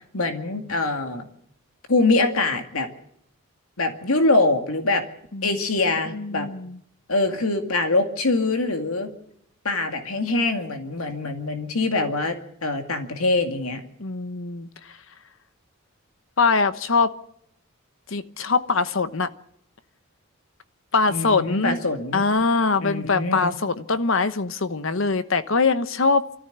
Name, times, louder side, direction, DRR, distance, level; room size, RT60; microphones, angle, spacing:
voice 1, 0.1-1.3 1.9-2.9 3.8-5.0 5.4-6.5 7.1-9.1 9.6-12.4 12.6-13.8 21.1-22.2 22.8-23.5, left 2 dB, 80° left, 6 dB, 2.2 m, -23 dB
voice 2, 6.1-6.8 14.0-14.7 16.4-17.1 18.1-19.3 20.9-21.8 22.1-26.4, left 4 dB, 60° left, 12 dB, 1.0 m, -22 dB
24.5 x 14.0 x 8.1 m, 0.73 s
head